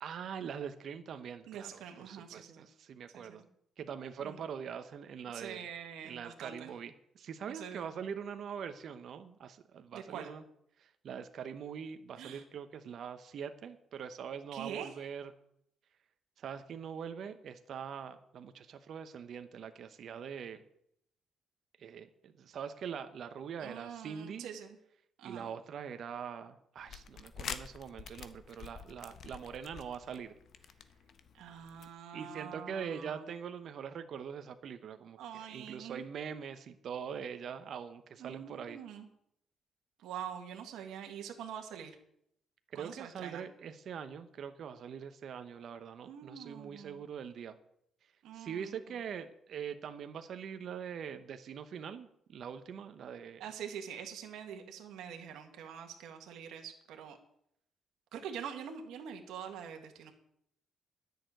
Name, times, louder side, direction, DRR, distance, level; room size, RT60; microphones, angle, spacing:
voice 1, 0.0-3.4 3.8-5.7 6.0-10.4 10.8-15.3 16.4-20.6 21.8-24.5 25.2-30.3 32.1-38.8 42.7-47.6 48.3-53.4, right 7 dB, 65° right, 9 dB, 1.0 m, -43 dB
voice 2, 1.5-2.7 3.1-3.5 4.2-4.4 5.3-6.7 7.5-7.9 9.9-10.3 12.2-12.4 14.5-14.9 23.6-24.8 25.2-25.5 31.3-33.3 35.2-36.0 38.2-39.1 40.0-41.9 42.7-43.4 46.0-47.0 48.2-48.7 53.4-57.2 58.1-60.1, right 8 dB, 85° right, 4 dB, 1.6 m, -45 dB
sound 1, 26.8-31.9, left 7 dB, 60° left, 0.9 m, -47 dB
10.5 x 6.7 x 9.1 m, 0.73 s
cardioid pair, 90°, 0 cm